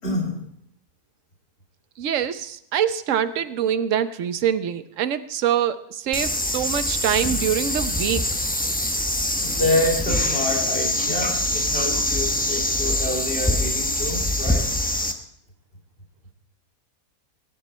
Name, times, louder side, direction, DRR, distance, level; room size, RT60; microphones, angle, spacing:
voice 1, 0.0-0.4 9.4-14.7, left 1 dB, 40° left, -1 dB, 3.0 m, -27 dB
voice 2, 2.0-8.3, right 9 dB, 60° right, 12 dB, 1.1 m, -24 dB
sound 1, 6.1-15.1, left 1 dB, 5° left, 0.9 m, -24 dB
21.5 x 10.5 x 4.3 m, 0.69 s
omnidirectional pair, 1.7 m